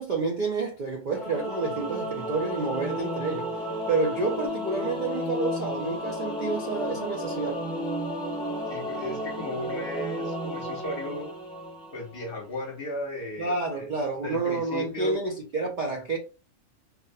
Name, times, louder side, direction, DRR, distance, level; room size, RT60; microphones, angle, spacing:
voice 1, 0.0-3.6 3.9-7.6 13.4-16.2, right 3 dB, 70° right, 0.4 m, -29 dB
Singing / Musical instrument, 1.1-12.4, equal, 5° left, 0.3 m, -33 dB
voice 2, 8.7-11.3 11.9-13.9 14.2-15.1, equal, 55° left, 0.8 m, -35 dB
2.4 x 2.1 x 2.5 m
omnidirectional pair, 1.3 m